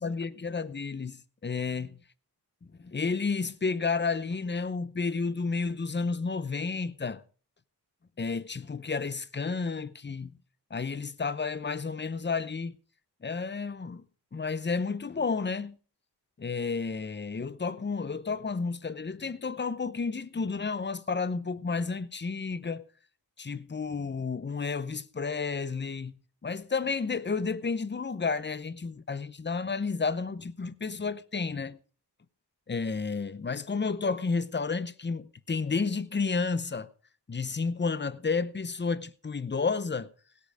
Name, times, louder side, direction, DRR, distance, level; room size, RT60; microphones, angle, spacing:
voice 1, 0.0-2.0 2.8-7.2 8.2-10.3 10.7-12.8 13.2-14.0 14.3-15.8 16.4-22.8 23.4-31.8 32.7-36.9 37.3-40.1, left 4 dB, 25° left, 0.7 m, -31 dB
17.0 x 8.4 x 4.9 m
wide cardioid pair, 105°, 41 cm